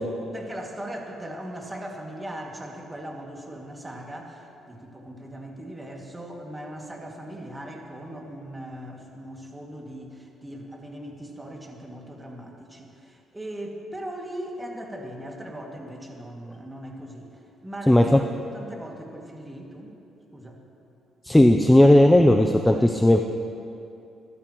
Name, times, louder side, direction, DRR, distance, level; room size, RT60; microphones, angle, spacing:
voice 1, 0.3-20.0 20.3-20.6 22.7-22.9, right 1 dB, 15° right, 0 dB, 2.3 m, -39 dB
voice 2, 17.9-18.2 21.3-23.2, left 1 dB, 10° left, 4 dB, 0.6 m, -16 dB
24.0 x 12.5 x 3.1 m, 2.7 s
cardioid pair, 90°, 0 cm